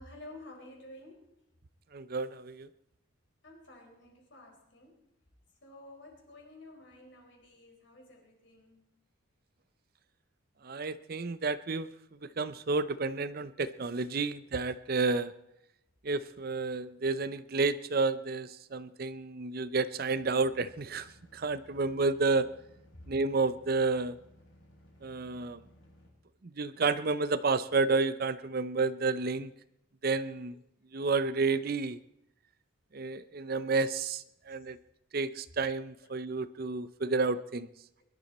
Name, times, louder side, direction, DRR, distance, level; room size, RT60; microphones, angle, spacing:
voice 1, 0.0-1.4 3.4-5.1 5.6-8.9 14.3-14.5 34.5-34.6 36.6-36.7, left 1 dB, 55° left, 2 dB, 4.2 m, -52 dB
voice 2, 1.9-2.7 10.6-11.9 12.4-15.3 16.0-22.4 23.1-24.2 25.0-25.6 26.6-29.5 30.0-30.6 30.9-32.0 32.9-34.8 35.1-37.7, right 3 dB, 45° right, 14 dB, 0.6 m, -30 dB
sound 1, 20.1-26.1, equal, 75° left, 5.6 m, -59 dB
22.0 x 12.0 x 4.2 m, 0.76 s
head